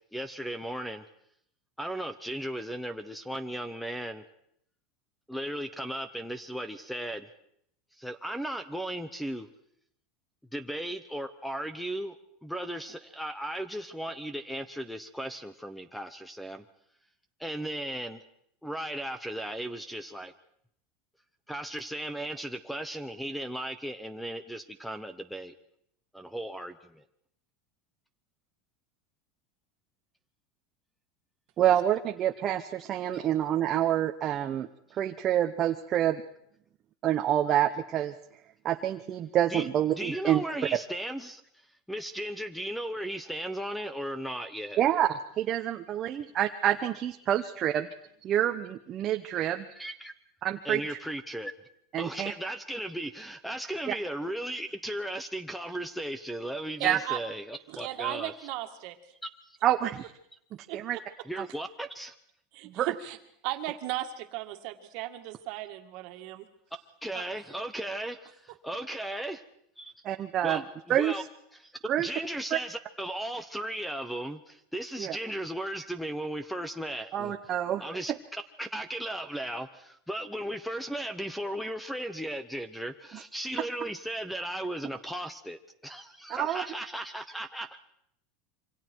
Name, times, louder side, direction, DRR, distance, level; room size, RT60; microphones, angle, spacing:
voice 1, 0.1-1.0 1.8-4.2 5.3-7.3 8.0-9.5 10.5-12.2 12.4-16.6 17.4-18.2 18.6-20.3 21.5-25.5 26.1-27.0 39.5-41.4 41.9-44.8 49.8-50.1 50.6-51.5 52.0-58.3 61.3-62.2 67.0-69.4 69.8-69.9 70.4-71.2 71.6-71.7 72.0-77.3 77.8-87.8, right 1 dB, ahead, 12 dB, 0.9 m, -36 dB
voice 2, 31.6-36.2 37.0-38.1 38.6-40.4 44.8-47.9 48.2-49.7 50.4-51.0 51.9-52.3 53.9-54.0 56.8-57.0 59.6-60.1 60.5-61.0 62.6-62.9 70.0-70.6 70.9-71.1 71.8-72.1 72.5-72.6 75.0-75.2 77.1-77.8 78.1-78.2 83.1-83.2 86.3-86.6, right 11 dB, 30° right, 5 dB, 0.9 m, -27 dB
voice 3, 56.8-57.2 57.7-59.0 60.7-60.8 62.5-63.2 63.4-66.5 67.1-67.2, right 15 dB, 55° right, 6 dB, 2.0 m, -36 dB
27.0 x 24.5 x 4.6 m, 0.71 s
supercardioid pair, 155°, 0 cm